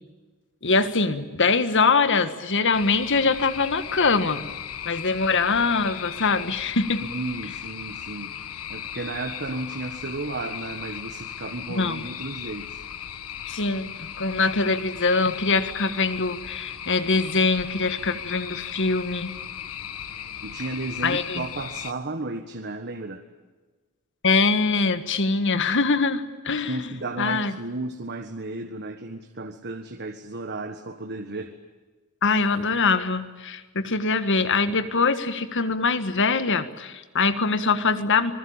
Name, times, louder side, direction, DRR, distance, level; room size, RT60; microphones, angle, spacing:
voice 1, 0.6-4.5 4.8-7.0 11.7-12.0 13.5-19.3 21.0-21.4 24.2-26.9 27.2-27.5 32.2-38.3, left 4 dB, 55° left, 11 dB, 1.7 m, -23 dB
sound 1, 2.7-21.9, left 9 dB, 75° left, 1.2 m, -37 dB
voice 2, 7.1-8.3 8.7-12.8 20.4-23.2 26.7-31.5, right 2 dB, 50° right, 6 dB, 1.6 m, -33 dB
26.0 x 21.0 x 8.9 m, 1.3 s
head